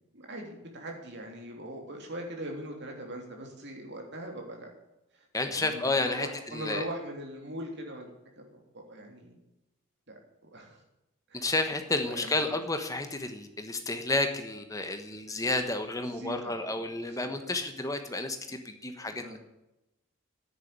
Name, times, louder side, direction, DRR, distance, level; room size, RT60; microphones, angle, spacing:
voice 1, 0.1-4.7 5.1-8.6 8.9-9.4 10.1-10.8 11.3-11.5 12.1-12.6 16.0-16.8 17.0-17.3 18.5-18.6 19.0-19.4, right 1 dB, 50° right, 1 dB, 3.3 m, -41 dB
voice 2, 5.3-6.8 11.3-19.4, left 2 dB, 15° left, 7 dB, 1.2 m, -31 dB
10.0 x 9.6 x 8.1 m, 0.91 s
head